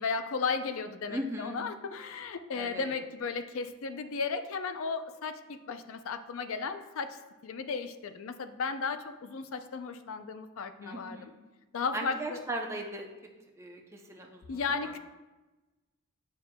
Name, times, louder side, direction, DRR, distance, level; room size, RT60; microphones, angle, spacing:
voice 1, 0.0-11.3 11.7-12.4 14.5-15.0, left 5 dB, 70° left, 9 dB, 0.4 m, -35 dB
voice 2, 1.1-1.6 2.5-2.9 10.8-11.3 11.9-13.1 13.6-14.9, right 1 dB, 10° right, 1 dB, 0.5 m, -38 dB
8.3 x 6.5 x 2.2 m, 1.1 s
head